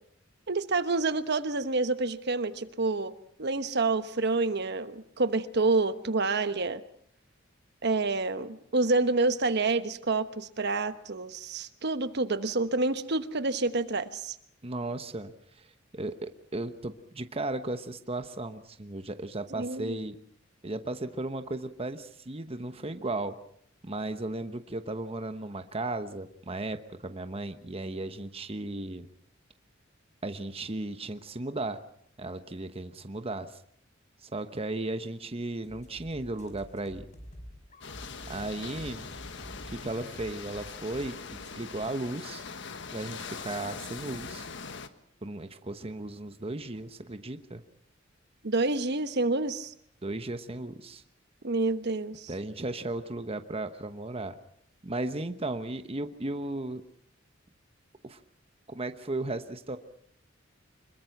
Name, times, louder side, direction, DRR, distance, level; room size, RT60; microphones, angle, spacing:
voice 1, 0.5-3.1 3.4-6.8 7.8-14.4 19.5-20.0 48.4-49.7 51.4-52.3, right 3 dB, 55° right, 11 dB, 1.2 m, -28 dB
voice 2, 14.6-15.3 15.9-20.2 20.6-23.3 23.8-29.1 30.2-31.8 32.2-33.6 34.2-37.1 38.3-39.1 39.6-42.4 42.9-44.5 45.2-47.6 50.0-51.0 52.3-54.3 54.8-56.8 58.0-58.2 58.7-59.8, right 2 dB, 30° right, 9 dB, 1.1 m, -35 dB
sound 1, 35.6-41.5, equal, 40° left, 5.4 m, -48 dB
sound 2, 37.8-44.9, left 5 dB, 65° left, 1.4 m, -42 dB
26.0 x 22.0 x 6.0 m, 0.66 s
head